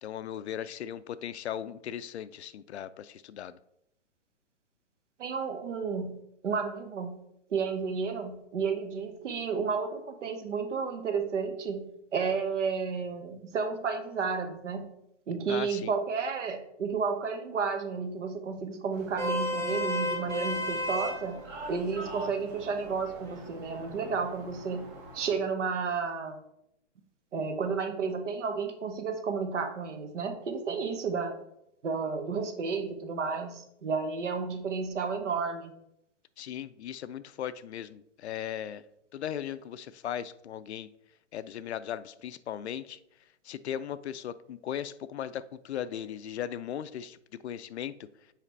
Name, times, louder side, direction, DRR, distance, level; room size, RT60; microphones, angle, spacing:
voice 1, 0.0-3.6 15.5-15.9 36.4-38.8 39.1-40.9 41.3-43.0 43.4-47.2 47.4-47.9, left 10 dB, 65° left, 15 dB, 0.5 m, -37 dB
voice 2, 5.2-6.2 6.4-7.2 7.5-14.9 15.3-21.4 21.7-26.4 27.3-31.4 31.8-35.7, right 5 dB, 75° right, 7 dB, 1.3 m, -32 dB
Vehicle horn car horn honking, 18.9-25.3, left 1 dB, 15° right, 0.5 m, -35 dB
7.4 x 5.0 x 3.3 m, 0.80 s
hypercardioid pair, 155°, 36 cm